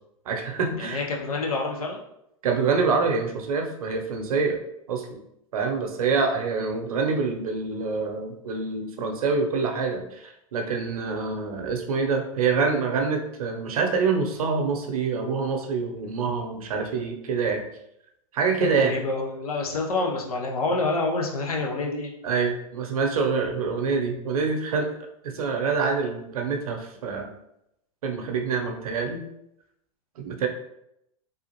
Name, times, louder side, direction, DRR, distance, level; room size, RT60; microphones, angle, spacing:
voice 1, 0.3-1.0 2.4-4.6 4.9-5.2 5.5-17.6 18.3-18.9 22.2-24.9 25.2-27.3 28.0-29.2 30.2-30.5, right 4 dB, 80° right, 3 dB, 0.7 m, -26 dB
voice 2, 0.8-2.0 18.6-22.1, left 3 dB, 90° left, 0 dB, 0.8 m, -27 dB
3.5 x 2.4 x 2.9 m, 0.79 s
hypercardioid pair, 115°, 18 cm